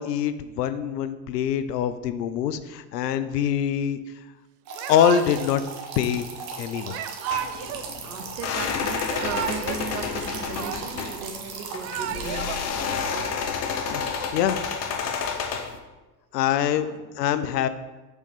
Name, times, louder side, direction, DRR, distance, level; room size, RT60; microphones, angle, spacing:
voice 1, 0.0-4.0 4.9-5.6 6.0-6.3 6.6-7.0 13.9-14.6 16.3-16.9 17.2-17.7, left 9 dB, 80° left, 12 dB, 0.6 m, -24 dB
Yell / Crying sobbing, 4.7-5.5 6.9-7.9 8.9-9.8 10.1-11.1 11.6-12.6, right 10 dB, 35° right, 0.4 m, -33 dB
sound 1, 4.7-12.3, right 5 dB, 55° right, 1.2 m, -38 dB
sound 2, 7.3-15.8, left 6 dB, 35° left, 0.7 m, -30 dB
voice 2, 8.0-12.8 13.1-13.4 16.5-17.2, right 5 dB, 75° right, 5 dB, 1.0 m, -37 dB
4.7 x 4.3 x 5.2 m, 1.2 s
hypercardioid pair, 75°, 49 cm